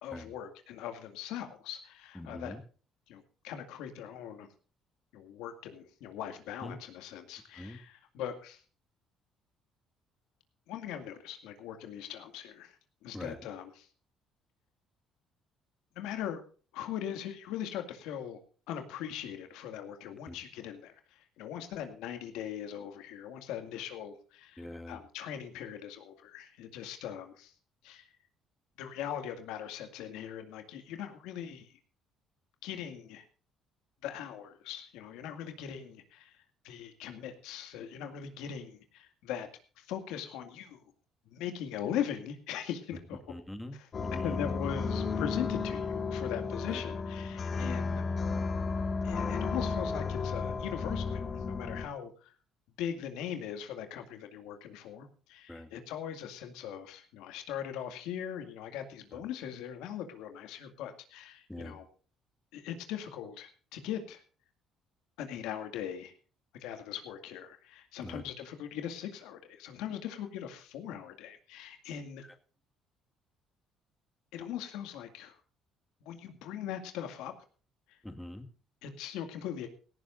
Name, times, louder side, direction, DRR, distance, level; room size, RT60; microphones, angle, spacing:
voice 1, 0.0-2.5 3.1-4.5 5.1-8.6 10.7-12.8 13.0-13.9 16.0-16.4 16.7-18.4 18.7-27.5 27.8-28.1 28.8-31.7 32.6-33.2 34.0-36.4 36.6-39.5 39.8-40.8 41.3-43.2 43.7-43.9 44.2-48.0 49.0-52.3 52.8-61.9 62.5-64.2 65.2-66.1 66.6-72.2 74.3-75.4 76.0-77.3 77.9-78.0 78.8-79.7, left 9 dB, 90° left, 7 dB, 2.1 m, -40 dB
voice 2, 2.2-2.6 6.6-6.8 7.5-7.8 13.1-13.4 20.3-20.4 24.6-25.0 43.3-44.4 46.7-46.8 47.6-47.8 55.5-55.7 59.1-59.2 61.5-61.8 68.0-68.2 78.0-78.5, left 1 dB, 5° left, 6 dB, 1.8 m, -43 dB
sound 1, 43.9-51.9, left 4 dB, 40° left, 1.6 m, -33 dB
17.0 x 15.0 x 2.6 m, 0.39 s
cardioid pair, 105°, 0 cm